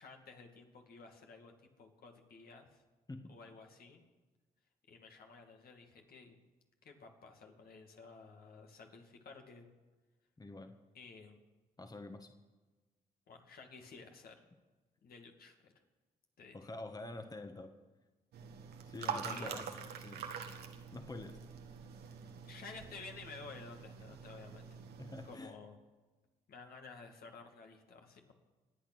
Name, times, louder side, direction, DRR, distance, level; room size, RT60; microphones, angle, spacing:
voice 1, 0.0-2.8 3.3-4.0 4.9-6.4 6.8-9.7 10.9-11.4 13.3-14.4 15.0-15.7 16.4-16.6 19.0-19.8 22.0-22.1 22.4-24.7 25.2-25.8 26.5-28.3, left 4 dB, 65° left, 3 dB, 2.4 m, -53 dB
voice 2, 10.4-10.7 11.8-12.3 16.5-17.7 18.9-19.7 20.0-20.3 20.9-21.4 24.1-24.2 25.0-25.5, left 2 dB, 25° left, 6 dB, 1.6 m, -46 dB
sound 1, 18.3-25.4, right 7 dB, 75° right, 1.5 m, -45 dB
25.0 x 8.8 x 6.2 m, 1.2 s
hypercardioid pair, 50°, 17 cm